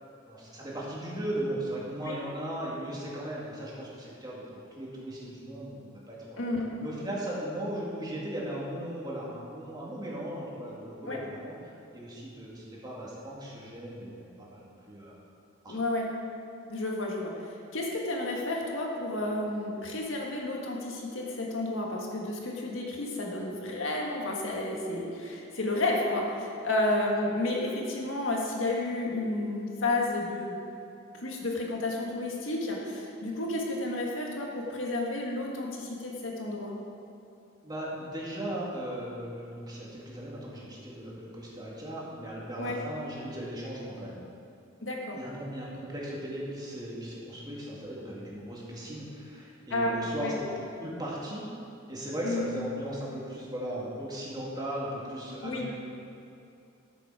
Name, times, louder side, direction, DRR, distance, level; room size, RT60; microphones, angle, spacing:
voice 1, 0.3-6.4 6.8-11.6 11.9-15.1 15.6-15.8 37.6-44.2 45.1-50.3 50.8-51.4 51.9-55.7, right 1 dB, 20° right, -5 dB, 2.3 m, -37 dB
voice 2, 6.4-6.7 11.1-11.2 15.7-16.1 16.7-30.6 31.1-36.7 42.6-42.8 44.8-45.2 49.7-50.3 52.2-52.5 55.4-55.7, left 2 dB, 85° left, -1 dB, 1.8 m, -31 dB
13.0 x 7.1 x 5.0 m, 2.7 s
head